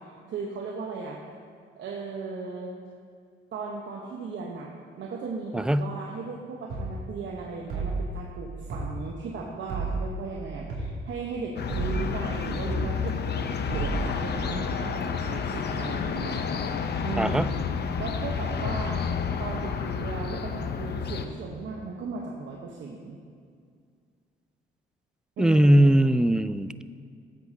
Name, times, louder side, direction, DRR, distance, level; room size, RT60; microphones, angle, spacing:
voice 1, 0.3-1.2 1.8-2.7 3.5-4.7 5.0-16.4 17.0-17.5 18.0-19.0 19.4-23.2 25.4-26.0, right 4 dB, 70° right, -1 dB, 1.0 m, -36 dB
voice 2, 5.5-5.9 17.2-17.5 25.4-26.8, right 1 dB, 5° right, 13 dB, 0.3 m, -20 dB
sound 1, 6.7-6.9 7.7-8.1 8.7-8.9 9.7-10.1 10.7-10.9 11.7-12.1 12.7-12.9 13.7-14.1, right 4 dB, 85° right, 2.5 m, -30 dB
sound 2, 11.6-21.3, left 6 dB, 55° left, 0.7 m, -30 dB
15.0 x 8.1 x 2.8 m, 2.2 s
cardioid pair, 70°, 20 cm